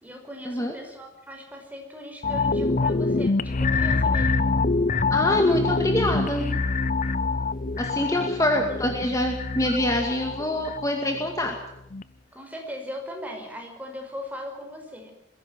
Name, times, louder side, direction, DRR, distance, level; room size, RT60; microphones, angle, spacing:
voice 1, 0.0-4.4 7.8-8.8 12.3-15.1, equal, 10° right, 3 dB, 5.2 m, -39 dB
sound 1, 2.2-11.5 11.9-12.0, left 3 dB, 45° left, 0.7 m, -25 dB
voice 2, 5.1-6.5 7.8-11.5, left 1 dB, 20° left, 3 dB, 2.2 m, -25 dB
21.5 x 16.0 x 9.4 m, 0.80 s
head